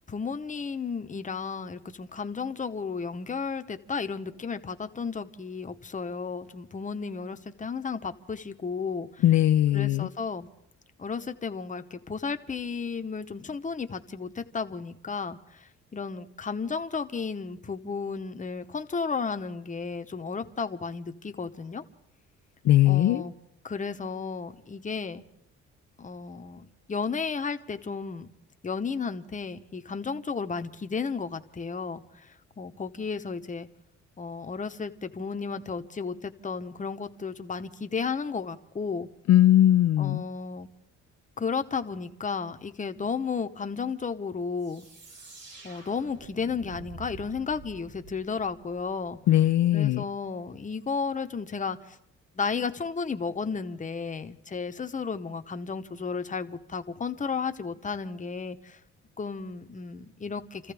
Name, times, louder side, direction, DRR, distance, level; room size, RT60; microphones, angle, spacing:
voice 1, 0.1-9.2 9.7-10.5 11.0-21.8 22.8-23.3 23.6-25.2 26.0-28.3 28.6-33.7 34.2-39.1 40.0-40.7 41.4-44.9 45.6-49.2 49.7-52.0 52.3-58.8 59.2-60.7, left 5 dB, 25° left, 7 dB, 1.0 m, -33 dB
voice 2, 9.2-10.1 22.6-23.3 39.3-40.2 49.3-50.0, left 13 dB, 65° left, 8 dB, 0.5 m, -20 dB
sound 1, 44.6-49.2, right 4 dB, 60° right, 6.9 m, -48 dB
28.5 x 14.5 x 3.4 m, 0.78 s
cardioid pair, 90°, 30 cm